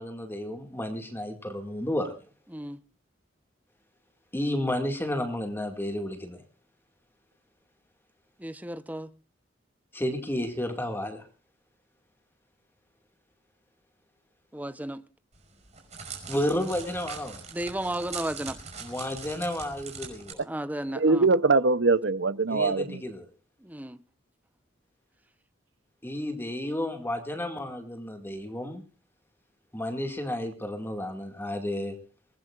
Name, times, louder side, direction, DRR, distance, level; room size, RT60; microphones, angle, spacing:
voice 1, 0.0-2.1 4.3-6.4 9.9-11.3 16.3-17.4 18.8-20.4 22.5-23.3 26.0-28.8 29.7-31.9, left 1 dB, 10° left, 2.1 m, -32 dB
voice 2, 2.5-2.8 8.4-9.1 14.5-15.0 17.5-18.6 20.4-21.3 23.6-24.0, right 1 dB, 10° right, 0.8 m, -34 dB
Crackle, 15.3-20.3, right 5 dB, 40° right, 5.5 m, -41 dB
voice 3, 20.9-23.0, right 3 dB, 70° right, 0.8 m, -22 dB
23.0 x 19.0 x 2.5 m
head